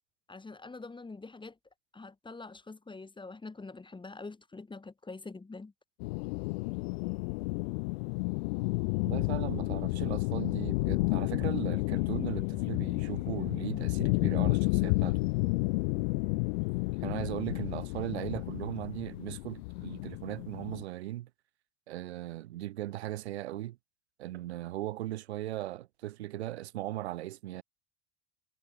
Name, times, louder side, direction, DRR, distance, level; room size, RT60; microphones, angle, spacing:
voice 1, 0.3-1.5 1.9-5.7, left 3 dB, 15° left, 2.1 m, -45 dB
sound 1, 6.0-20.8, left 27 dB, 65° left, 0.5 m, -31 dB
voice 2, 9.0-15.2 17.0-21.3 21.9-23.8 24.2-27.6, right 15 dB, 75° right, 3.7 m, -38 dB
hypercardioid pair, 70°, 33 cm